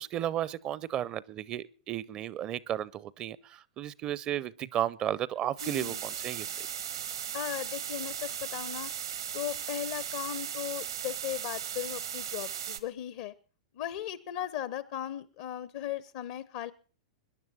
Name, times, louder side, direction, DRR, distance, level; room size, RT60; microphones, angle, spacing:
voice 1, 0.0-6.7, right 11 dB, 35° right, 22 dB, 0.6 m, -34 dB
voice 2, 5.6-6.0 7.3-8.9 9.3-13.3 13.7-16.7, left 11 dB, 55° left, 18 dB, 0.7 m, -37 dB
sound 1, 5.6-12.8, right 9 dB, 75° right, 1.3 m, -37 dB
21.5 x 10.5 x 4.2 m, 0.38 s
figure-of-eight pair, 95°, 3 cm